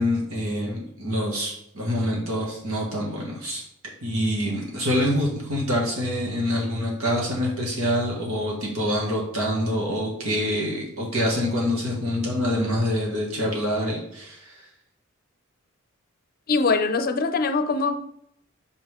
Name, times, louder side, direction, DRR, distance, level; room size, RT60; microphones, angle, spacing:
voice 1, 0.0-3.6 4.0-14.5, equal, 90° right, -3 dB, 2.0 m, -26 dB
voice 2, 16.5-18.0, left 4 dB, 45° left, 8 dB, 0.5 m, -22 dB
5.4 x 5.1 x 3.7 m, 0.74 s
head